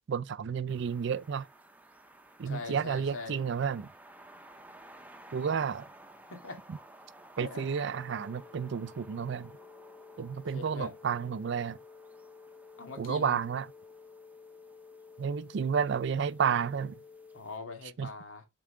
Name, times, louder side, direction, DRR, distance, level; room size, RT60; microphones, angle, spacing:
voice 1, 0.1-1.5 2.4-3.9 5.3-5.8 7.4-9.5 10.2-11.8 13.0-13.7 15.2-16.9 18.0-18.1, right 6 dB, 60° right, 0.4 m, -31 dB
sound 1, 0.7-17.6, right 1 dB, 10° right, 0.7 m, -56 dB
voice 2, 2.4-3.4 6.3-6.6 7.4-7.7 10.5-11.0 12.8-13.4 17.3-18.5, left 3 dB, 80° left, 2.0 m, -42 dB
sound 2, 7.9-17.4, left 5 dB, 20° left, 1.1 m, -53 dB
7.3 x 4.7 x 3.2 m
head